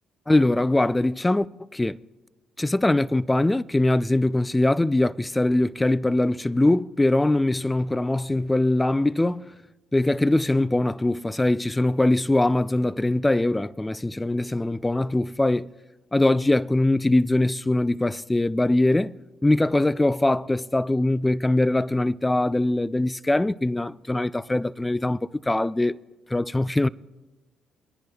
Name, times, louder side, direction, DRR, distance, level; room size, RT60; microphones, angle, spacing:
voice 1, 0.3-1.5 1.7-2.0 2.6-9.5 9.9-15.7 16.1-26.0 26.3-26.9, left 2 dB, 15° left, 0.3 m, -22 dB
24.0 x 10.5 x 2.3 m
hypercardioid pair, 55°, 0 cm